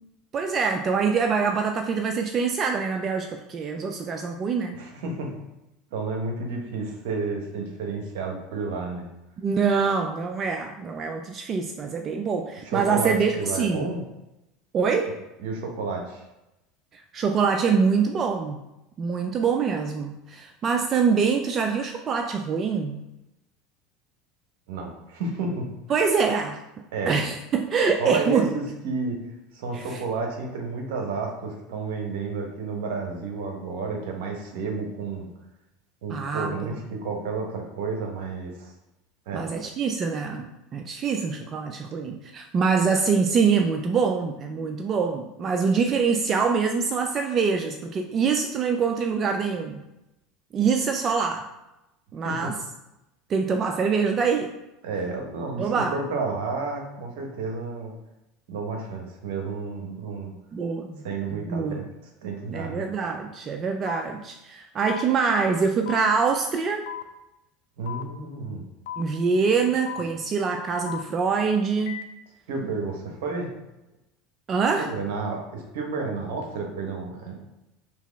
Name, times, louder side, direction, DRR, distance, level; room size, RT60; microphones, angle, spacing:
voice 1, 0.3-4.8 9.4-13.9 14.7-15.1 16.9-18.6 19.0-23.0 25.9-26.6 27.1-28.5 29.7-30.0 36.1-36.7 39.3-49.8 50.5-51.5 52.1-52.5 53.3-54.5 55.6-56.0 60.5-61.0 61.3-61.9 62.5-66.9 69.0-72.0 74.5-74.9, right 5 dB, 35° right, 4 dB, 0.3 m, -24 dB
voice 2, 4.7-5.3 5.9-9.1 12.6-14.0 15.4-16.2 24.7-25.7 26.9-27.1 28.0-29.2 29.5-35.3 36.0-38.7 39.3-39.5 52.2-52.5 54.8-57.9 58.5-60.4 61.0-61.8 62.2-62.8 67.8-68.6 72.5-73.5 74.8-77.4, right 4 dB, 70° right, 2 dB, 0.8 m, -31 dB
sound 1, 63.9-64.0 64.9-65.0 65.9-66.0 66.9-67.0 67.9-68.0 68.9-69.0 69.9-70.0 70.9-71.0 71.9-72.0, left 11 dB, 75° left, 0.3 m, -35 dB
3.3 x 2.8 x 3.3 m, 0.94 s
hypercardioid pair, 85°, 0 cm